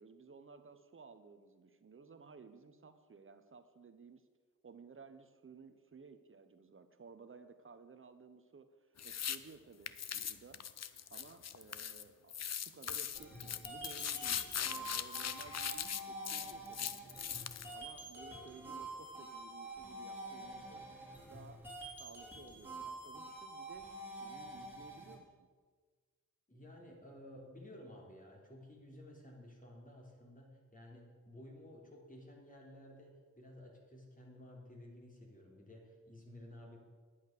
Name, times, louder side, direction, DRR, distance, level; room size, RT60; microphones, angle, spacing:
voice 1, 0.0-4.3 4.6-10.6 11.1-20.9 21.3-21.6 22.0-25.5, right 5 dB, 40° right, 10 dB, 0.9 m, -57 dB
sound 1, 9.0-9.4 9.9-12.0 12.3-17.7, left 9 dB, 55° left, 0.6 m, -40 dB
sound 2, 13.1-25.1, right 2 dB, 5° right, 3.7 m, -48 dB
voice 2, 26.5-36.8, left 1 dB, 25° left, -1 dB, 3.3 m, -54 dB
10.5 x 8.7 x 6.6 m, 1.5 s
cardioid pair, 75°, 32 cm